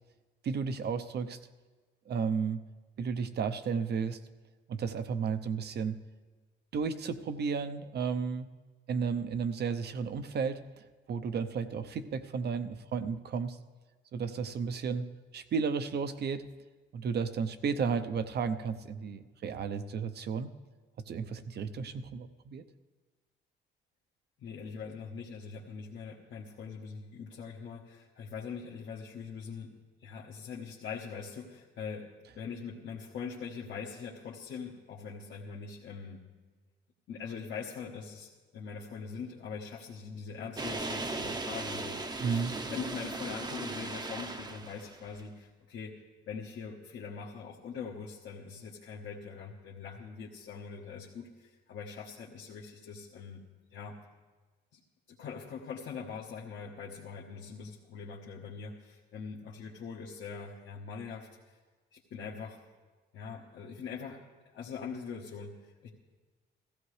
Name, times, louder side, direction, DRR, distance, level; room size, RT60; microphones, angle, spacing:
voice 1, 0.4-1.4 2.1-2.6 3.0-4.2 4.7-6.0 6.7-8.5 8.9-13.6 14.1-15.1 15.3-16.4 16.9-20.5 21.1-22.6 42.2-42.5, right 6 dB, 55° right, 10 dB, 0.7 m, -33 dB
voice 2, 24.4-29.7 30.0-32.1 32.3-36.2 37.1-45.9 46.3-53.4 53.7-54.0 54.7-54.8 55.1-61.6 61.9-62.6 63.1-64.2 64.5-65.9, left 6 dB, 70° left, -3 dB, 1.2 m, -42 dB
sound 1, 40.6-45.2, right 2 dB, 20° right, 0.7 m, -37 dB
15.5 x 15.0 x 3.3 m, 1.3 s
cardioid pair, 90°, 20 cm